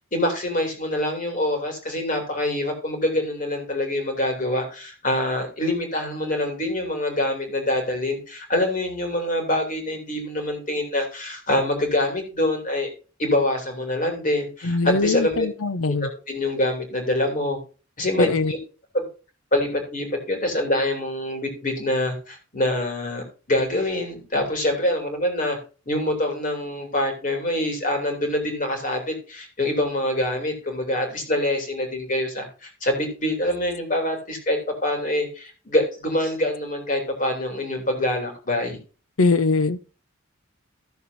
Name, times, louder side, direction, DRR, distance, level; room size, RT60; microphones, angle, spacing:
voice 1, 0.1-12.9 13.2-15.5 15.9-17.6 18.0-18.6 18.9-19.0 19.5-25.6 25.9-38.8, left 1 dB, 40° left, 3.0 m, -25 dB
voice 2, 14.6-16.1 18.2-18.5 39.2-39.9, left 3 dB, 80° left, 0.8 m, -22 dB
15.0 x 6.9 x 2.7 m
head